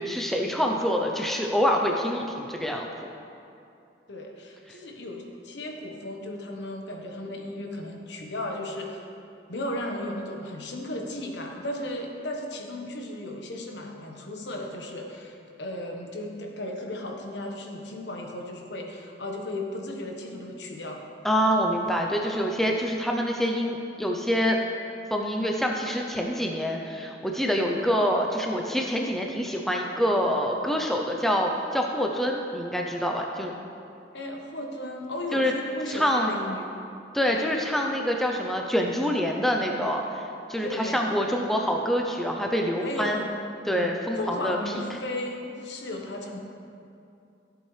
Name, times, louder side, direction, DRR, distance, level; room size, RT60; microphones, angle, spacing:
voice 1, 0.0-2.9 21.2-24.6 25.1-33.5 35.3-35.5 35.9-36.3 37.1-43.2 43.7-44.6, equal, ahead, 1 dB, 0.6 m, -26 dB
voice 2, 4.1-9.0 9.5-21.0 34.1-36.6 37.3-37.5 40.6-41.2 42.8-43.4 43.7-46.4, left 1 dB, 80° left, 1 dB, 1.2 m, -35 dB
13.5 x 7.8 x 3.3 m, 2.6 s
head